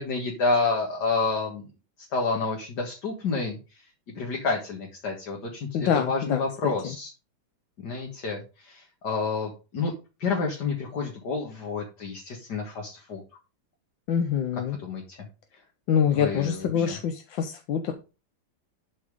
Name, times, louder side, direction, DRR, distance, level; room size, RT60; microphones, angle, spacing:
voice 1, 0.0-1.7 2.1-3.6 4.2-7.1 7.8-9.9 10.2-13.2 14.5-15.2 16.1-17.0, left 4 dB, 55° left, 0 dB, 2.3 m, -29 dB
voice 2, 5.7-6.7 14.1-14.8 15.9-17.9, left 8 dB, 75° left, 6 dB, 1.6 m, -25 dB
12.5 x 4.4 x 4.9 m, 0.31 s
omnidirectional pair, 2.2 m